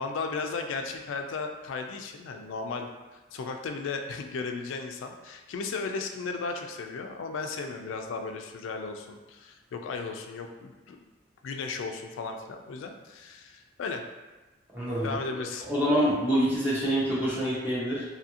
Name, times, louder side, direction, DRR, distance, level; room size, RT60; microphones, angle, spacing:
voice 1, 0.0-11.1 11.4-14.0 15.0-15.7, left 4 dB, 80° left, 4 dB, 0.3 m, -35 dB
voice 2, 14.7-15.2 15.6-18.0, equal, 10° right, -9 dB, 0.6 m, -26 dB
2.7 x 2.5 x 2.7 m, 1.2 s
head